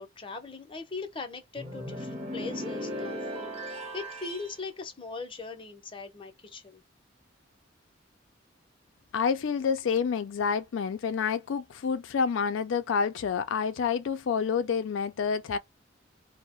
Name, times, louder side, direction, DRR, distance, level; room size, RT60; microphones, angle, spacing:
voice 1, 0.0-6.8, left 4 dB, 25° left, 0.6 m, -40 dB
sound 1, 1.6-4.6, equal, 30° right, 0.8 m, -37 dB
voice 2, 9.1-15.6, left 6 dB, 75° left, 0.4 m, -28 dB
2.7 x 2.0 x 2.9 m
head